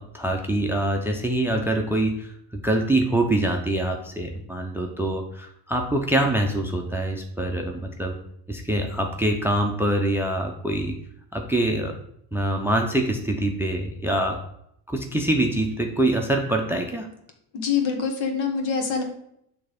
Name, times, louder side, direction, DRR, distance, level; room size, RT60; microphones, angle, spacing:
voice 1, 0.0-8.2 8.5-11.0 11.3-12.0 12.3-14.4 14.9-17.1, right 1 dB, 5° right, 2 dB, 0.6 m, -24 dB
voice 2, 17.5-19.0, left 6 dB, 65° left, 3 dB, 1.6 m, -25 dB
6.3 x 3.5 x 5.1 m, 0.72 s
cardioid pair, 115°, 49 cm